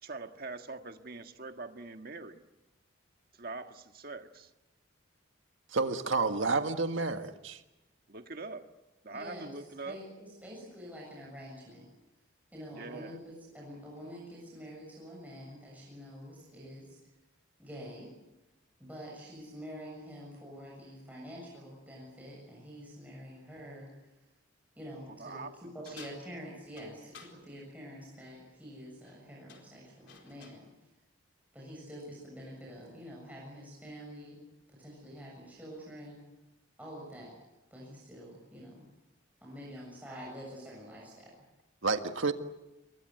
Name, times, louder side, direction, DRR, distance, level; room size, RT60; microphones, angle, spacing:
voice 1, 0.0-2.4 3.3-4.5 8.1-8.7 9.0-10.0 12.7-13.2 25.2-25.7, right 3 dB, 50° right, 6 dB, 1.6 m, -43 dB
voice 2, 5.7-7.6 41.8-42.3, right 3 dB, 75° right, 7 dB, 1.8 m, -30 dB
voice 3, 9.1-9.5 9.9-11.8 12.5-17.0 17.6-18.1 18.8-24.1 24.8-30.7 31.5-34.4 34.7-36.2 36.8-37.3 37.7-38.8 39.4-41.3, equal, 10° right, -4 dB, 7.2 m, -47 dB
sound 1, 25.8-27.4 28.9-29.2 29.5-30.6, left 6 dB, 60° left, 4.5 m, -54 dB
28.5 x 22.5 x 8.0 m, 0.98 s
head